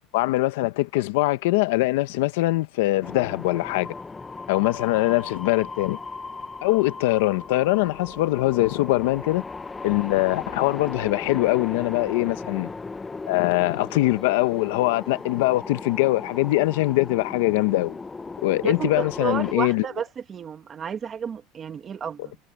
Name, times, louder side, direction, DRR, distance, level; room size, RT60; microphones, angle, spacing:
voice 1, 0.1-3.9 4.5-6.0 6.6-9.4 9.8-12.7 13.3-18.0 18.4-19.8, left 19 dB, 75° left, 0.9 m, -22 dB
sound 1, 3.0-19.5, left 4 dB, 10° left, 0.8 m, -37 dB
voice 2, 18.6-22.4, right 7 dB, 20° right, 1.7 m, -31 dB
cardioid pair, 175°, 0 cm